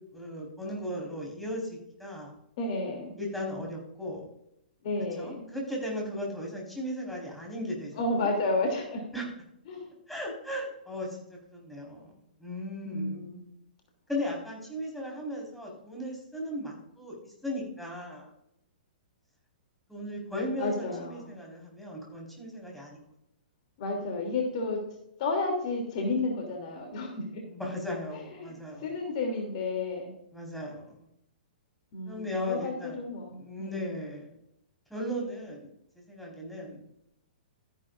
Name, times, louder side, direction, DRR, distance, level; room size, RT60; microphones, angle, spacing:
voice 1, 0.1-2.3 3.2-4.3 5.2-8.3 9.1-9.3 10.1-11.2 11.5-12.1 12.4-13.2 14.1-18.2 19.9-23.0 27.5-29.0 30.3-31.0 32.0-33.0 33.3-34.3 34.9-35.7 36.1-36.8, left 1 dB, ahead, -2 dB, 4.6 m, -36 dB
voice 2, 2.6-3.1 4.8-5.5 8.0-9.0 9.7-9.9 12.8-13.4 20.6-21.3 23.8-24.8 25.2-27.4 28.1-28.5 28.8-30.1 31.9-33.9, left 2 dB, 45° left, 2 dB, 3.0 m, -31 dB
13.5 x 10.5 x 2.6 m, 0.77 s
figure-of-eight pair, 120°, 5 cm